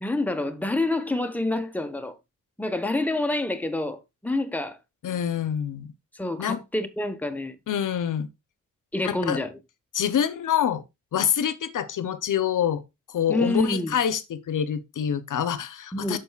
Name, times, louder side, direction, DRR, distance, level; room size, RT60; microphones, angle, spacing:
voice 1, 0.0-2.2 2.6-4.8 6.1-7.6 8.9-9.6 13.3-14.0 15.9-16.2, left 2 dB, 5° left, 1.0 m, -27 dB
voice 2, 5.0-5.9 6.4-6.6 7.7-8.3 9.0-9.4 9.9-10.8 11.1-12.8 13.1-16.2, left 9 dB, 80° left, 0.7 m, -26 dB
13.0 x 4.5 x 2.3 m
wide cardioid pair, 85°, 31 cm